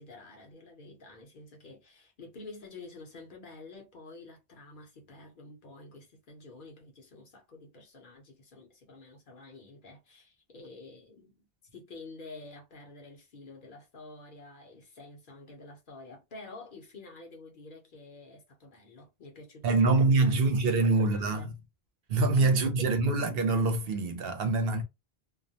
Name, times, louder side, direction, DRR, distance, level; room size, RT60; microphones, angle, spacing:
voice 1, 0.0-11.4 11.7-20.5 20.8-21.5 22.4-23.0, left 2 dB, 55° left, 0.9 m, -49 dB
voice 2, 19.6-21.5 22.1-24.8, right 3 dB, 70° right, 0.8 m, -25 dB
2.4 x 2.1 x 2.7 m
omnidirectional pair, 1.0 m